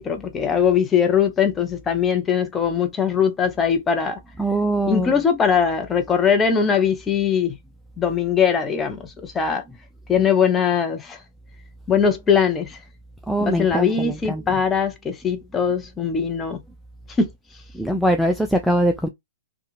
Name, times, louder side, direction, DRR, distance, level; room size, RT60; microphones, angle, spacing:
voice 1, 0.0-4.2 4.9-7.5 8.0-9.6 10.1-11.2 11.9-12.8 13.4-16.6 17.2-17.3, left 7 dB, 15° left, 0.7 m, -21 dB
voice 2, 4.4-5.1 13.3-14.6 17.8-19.1, right 1 dB, ahead, 0.3 m, -22 dB
2.9 x 2.4 x 2.5 m
hypercardioid pair, 125°, 0 cm